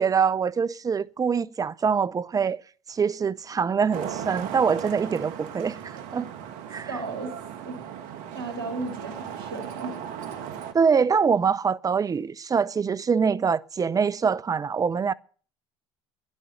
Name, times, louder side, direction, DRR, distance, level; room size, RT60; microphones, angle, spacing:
voice 1, 0.0-2.6 2.9-6.3 6.7-7.0 10.7-15.1, right 6 dB, 25° right, 0.6 m, -24 dB
Traffic noise roadway noise, 3.9-10.7, right 8 dB, 70° right, 1.6 m, -37 dB
voice 2, 6.9-7.3 7.6-7.7 8.3-10.0, right 3 dB, 90° right, 2.7 m, -34 dB
11.0 x 10.5 x 7.9 m
hypercardioid pair, 70°, 13 cm